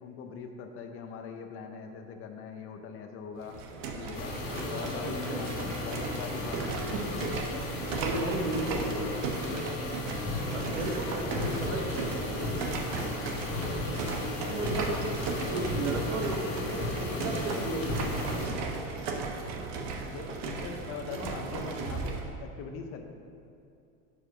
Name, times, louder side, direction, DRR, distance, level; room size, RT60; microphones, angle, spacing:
voice 1, 0.0-3.6 3.9-4.4 4.7-7.0 8.4-8.6 10.2-10.4 13.6-13.9 20.1-23.0, left 5 dB, 40° left, 5 dB, 0.6 m, -41 dB
sound 1, 3.4-22.3, right 4 dB, 50° right, 0.9 m, -36 dB
sound 2, 4.1-18.5, left 3 dB, 60° left, 1.3 m, -37 dB
voice 2, 5.0-5.4 6.9-7.1 8.0-9.1 10.5-12.6 14.5-15.0 15.5-18.4, right 2 dB, 85° right, 1 dB, 1.4 m, -34 dB
sound 3, 10.3-19.0, left 1 dB, 5° right, 2.0 m, -38 dB
7.1 x 4.8 x 5.9 m, 2.5 s
cardioid pair, 155°, 35 cm